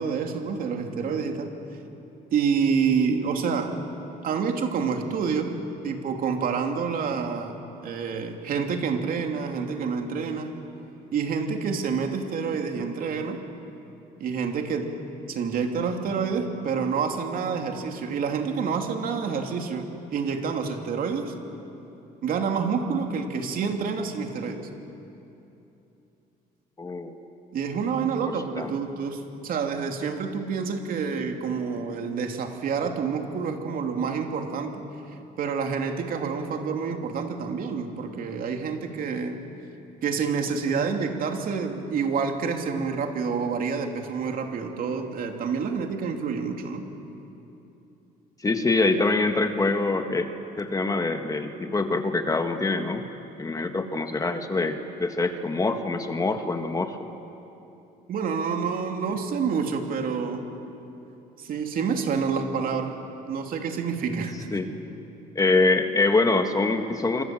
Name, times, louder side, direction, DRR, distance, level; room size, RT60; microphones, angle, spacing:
voice 1, 0.0-1.5 2.3-3.7 4.2-5.5 5.8-10.5 11.1-13.4 14.2-14.9 15.3-21.3 22.2-24.7 27.5-34.7 35.4-39.4 40.0-46.8 58.1-60.5 61.4-62.9 63.2-64.5, right 5 dB, 60° right, 3 dB, 2.9 m, -28 dB
voice 2, 26.8-27.1 28.3-28.7 48.4-50.3 50.6-53.1 53.4-57.0 64.5-64.7 65.4-67.2, left 3 dB, 20° left, 6 dB, 1.8 m, -24 dB
26.0 x 24.5 x 7.8 m, 2.9 s
cardioid pair, 110°, 17 cm